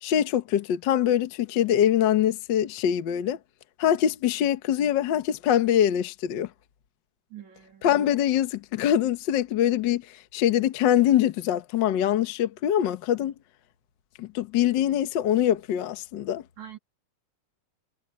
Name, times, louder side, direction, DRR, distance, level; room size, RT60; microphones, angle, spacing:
voice 1, 0.0-3.4 3.8-6.5 7.8-13.3 14.2-16.4, left 10 dB, 80° left, 1.0 m, -24 dB
voice 2, 7.3-8.1 16.6-16.8, right 11 dB, 60° right, 4.1 m, -44 dB
omnidirectional pair, 3.7 m